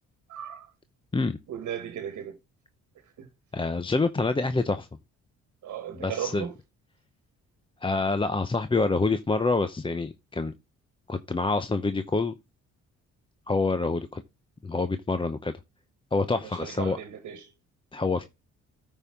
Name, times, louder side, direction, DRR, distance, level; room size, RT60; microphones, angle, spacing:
voice 1, 0.3-0.7 1.5-2.4 3.2-3.3 5.6-6.5 16.3-17.5, right 9 dB, 70° right, 1.4 m, -36 dB
voice 2, 3.5-4.9 6.0-6.4 7.8-10.5 11.1-12.3 13.5-14.2 14.6-15.5 16.1-17.0 17.9-18.2, left 3 dB, 15° left, 0.6 m, -26 dB
13.0 x 5.5 x 3.5 m
cardioid pair, 90°, 30 cm